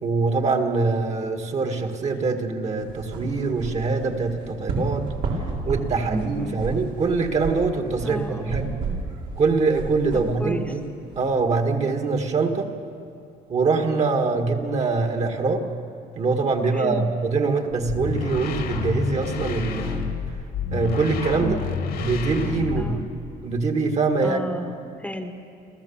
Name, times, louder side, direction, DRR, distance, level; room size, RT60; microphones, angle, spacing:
voice 1, 0.0-5.1 5.6-8.7 9.4-10.8 11.2-12.7 13.5-15.7 16.2-20.1 20.7-21.6 22.0-22.9 23.4-24.5, right 4 dB, 40° right, 5 dB, 1.9 m, -23 dB
sound 1, 2.8-11.3, right 3 dB, 90° right, 4.3 m, -32 dB
voice 2, 6.0-6.6 8.0-8.7 10.1-10.8 16.7-17.1 21.4-21.8 22.7-23.0 24.2-25.3, equal, 5° left, 6 dB, 1.3 m, -33 dB
sound 2, 17.7-23.2, left 5 dB, 70° left, 2.2 m, -29 dB
29.5 x 14.0 x 7.2 m, 2.5 s
cardioid pair, 110°, 17 cm